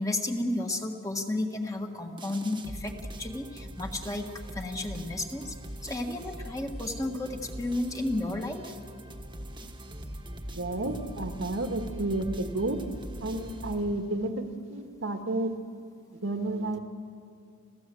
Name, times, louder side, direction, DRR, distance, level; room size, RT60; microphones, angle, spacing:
voice 1, 0.0-2.9 3.2-5.5 5.8-8.7 11.9-12.0, left 1 dB, 15° left, 3 dB, 1.6 m, -32 dB
sound 1, 2.2-14.3, right 1 dB, 20° right, 1.4 m, -42 dB
voice 2, 10.6-12.8 13.2-15.5 16.2-16.8, right 2 dB, 65° right, 5 dB, 1.8 m, -31 dB
30.0 x 16.0 x 7.8 m, 2.4 s
head